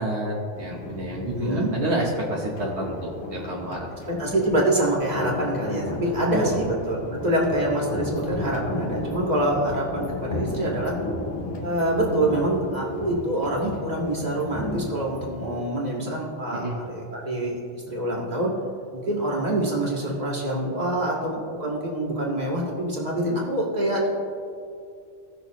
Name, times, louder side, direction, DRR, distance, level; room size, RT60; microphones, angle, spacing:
voice 1, 0.0-3.9 6.3-6.6 16.5-16.8, right 1 dB, 70° right, -3 dB, 1.4 m, -29 dB
sound 1, 0.5-15.7, left 2 dB, 60° left, 1.2 m, -34 dB
voice 2, 1.2-1.7 4.2-10.9 11.6-18.5 18.9-24.1, right 1 dB, 35° right, -3 dB, 2.0 m, -26 dB
17.0 x 6.2 x 3.0 m, 2.4 s
omnidirectional pair, 1.2 m